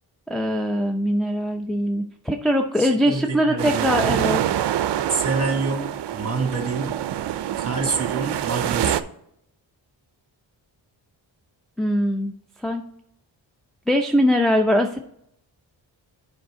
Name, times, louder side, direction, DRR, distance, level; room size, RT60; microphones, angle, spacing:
voice 1, 0.3-4.4 11.8-12.3 12.6-12.8 13.9-15.0, equal, ahead, 4 dB, 0.5 m, -21 dB
voice 2, 2.8-4.1 5.1-7.0 7.6-9.1, right 4 dB, 30° right, 3 dB, 1.7 m, -27 dB
sound 1, 3.6-9.0, right 11 dB, 65° right, 0.5 m, -25 dB
7.7 x 5.0 x 3.7 m, 0.73 s
cardioid pair, 65°, 46 cm